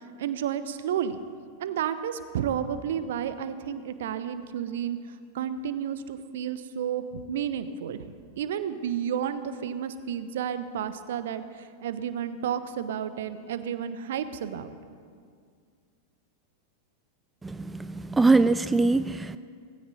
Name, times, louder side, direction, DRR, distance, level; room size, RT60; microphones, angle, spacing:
voice 1, 0.2-1.2 1.6-5.0 5.3-8.0 8.4-14.8, right 9 dB, 60° right, 12 dB, 0.8 m, -31 dB
voice 2, 17.4-19.4, right 3 dB, 10° right, 13 dB, 0.3 m, -23 dB
19.0 x 15.5 x 4.1 m, 2.1 s
figure-of-eight pair, 90°, 0 cm